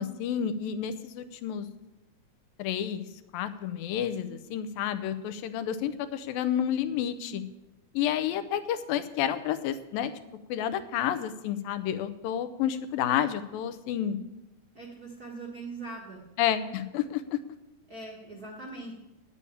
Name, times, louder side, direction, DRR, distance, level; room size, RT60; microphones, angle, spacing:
voice 1, 0.0-1.7 2.6-3.1 3.3-7.4 7.9-10.1 10.5-14.2 16.4-17.4, left 10 dB, 80° left, 11 dB, 2.4 m, -30 dB
voice 2, 14.7-16.2 17.9-18.9, right 3 dB, 40° right, -1 dB, 1.3 m, -41 dB
9.8 x 8.3 x 8.6 m, 0.95 s
omnidirectional pair, 4.1 m